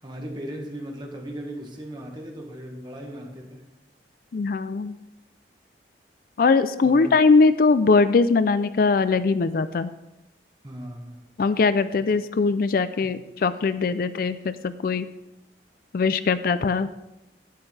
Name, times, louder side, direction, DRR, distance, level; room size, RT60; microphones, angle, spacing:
voice 1, 0.0-3.7 6.8-7.1 10.6-11.2 13.0-13.1, equal, 25° right, 1 dB, 1.6 m, -37 dB
voice 2, 4.3-5.0 6.4-9.9 11.4-15.1 15.9-16.9, left 4 dB, 55° left, 13 dB, 0.4 m, -21 dB
11.0 x 9.9 x 3.3 m, 0.93 s
head